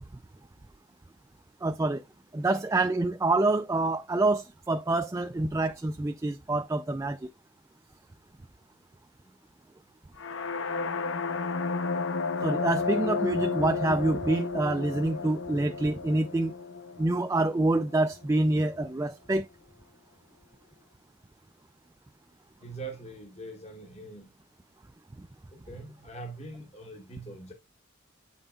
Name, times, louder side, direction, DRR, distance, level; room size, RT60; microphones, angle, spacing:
voice 1, 1.6-2.0 2.3-7.2 12.4-16.5 17.0-19.4, right 2 dB, 15° right, 0.3 m, -26 dB
sound 1, 10.2-18.0, left 4 dB, 85° left, 0.8 m, -32 dB
voice 2, 22.6-24.3 25.5-27.5, right 2 dB, 35° left, 1.1 m, -42 dB
8.0 x 5.5 x 2.3 m
head